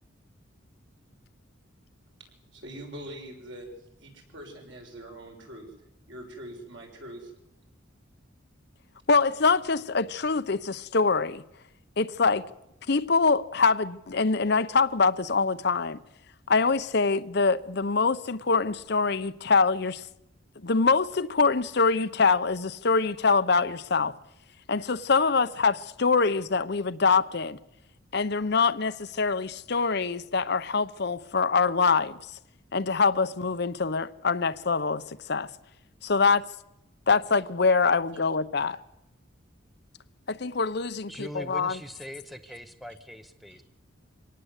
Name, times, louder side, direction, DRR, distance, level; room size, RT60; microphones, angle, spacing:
voice 1, 2.5-5.7 6.1-7.3, right 1 dB, 65° right, 6.7 m, -43 dB
voice 2, 9.1-11.4 12.0-12.4 12.9-16.0 16.5-20.0 20.6-24.1 24.7-27.6 28.1-32.2 32.7-35.5 36.0-36.4 37.1-38.8 40.3-41.8, left 4 dB, 55° left, 0.8 m, -24 dB
voice 3, 41.1-43.6, equal, ahead, 0.7 m, -41 dB
25.0 x 18.0 x 8.2 m
head